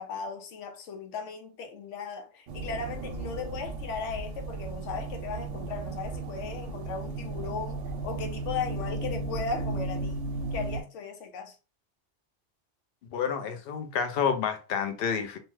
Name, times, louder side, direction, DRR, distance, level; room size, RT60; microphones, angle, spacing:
voice 1, 0.0-10.1 10.5-11.6, left 5 dB, 85° left, 0.9 m, -37 dB
sound 1, 2.5-10.8, right 3 dB, 90° right, 0.9 m, -35 dB
voice 2, 13.1-15.4, left 7 dB, 60° left, 0.7 m, -29 dB
2.7 x 2.1 x 3.1 m
omnidirectional pair, 1.2 m